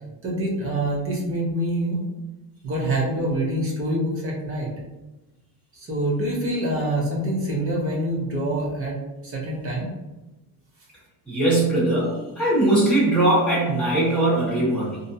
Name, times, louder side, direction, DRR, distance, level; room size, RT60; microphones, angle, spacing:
voice 1, 0.2-2.0 2.6-4.7 5.7-9.0 9.2-9.9, right 1 dB, 30° right, -3 dB, 0.6 m, -25 dB
voice 2, 11.3-15.0, right 1 dB, 5° left, -9 dB, 1.1 m, -20 dB
2.4 x 2.1 x 2.6 m, 1.1 s
cardioid pair, 145°, 45 cm